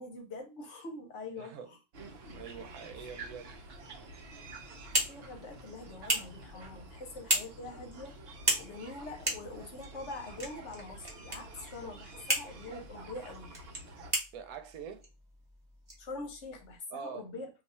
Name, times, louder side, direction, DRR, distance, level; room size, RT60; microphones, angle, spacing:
voice 1, 0.0-1.8 2.2-2.4 3.0-3.1 5.1-8.2 8.6-13.5 16.0-17.5, left 2 dB, 60° left, 1.0 m, -44 dB
voice 2, 1.4-1.7 2.3-3.6 14.3-15.0 16.9-17.2, right 7 dB, 85° right, 1.1 m, -44 dB
sound 1, 1.9-14.1, right 2 dB, 55° right, 0.8 m, -49 dB
Tool Clicks, 4.4-16.8, right 1 dB, 20° right, 0.9 m, -37 dB
2.6 x 2.3 x 4.1 m
omnidirectional pair, 1.5 m